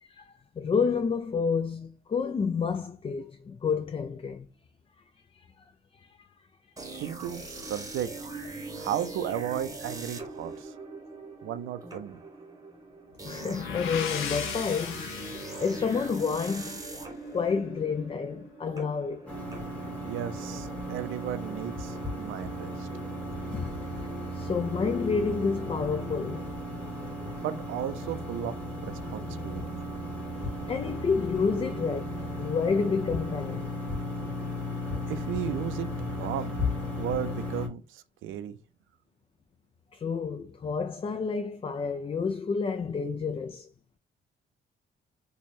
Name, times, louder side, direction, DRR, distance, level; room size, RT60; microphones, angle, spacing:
voice 1, 0.0-4.5 5.9-6.3 6.8-7.0 13.2-17.0 17.3-19.3 23.5-23.7 24.3-26.9 30.7-32.0 32.4-33.7 39.9-43.7, left 5 dB, 30° left, 0.4 m, -30 dB
sound 1, 6.8-20.5, right 3 dB, 15° right, 1.0 m, -42 dB
voice 2, 6.9-8.1 8.7-10.7 11.4-12.2 20.0-22.9 27.4-28.6 28.8-29.8 31.5-31.7 35.1-36.6 37.0-38.6, right 10 dB, 80° right, 0.5 m, -35 dB
sound 2, 13.2-17.0, left 8 dB, 90° left, 0.6 m, -37 dB
sound 3, 19.3-37.7, left 1 dB, 5° left, 1.5 m, -35 dB
3.1 x 2.3 x 4.2 m
cardioid pair, 90°, 20 cm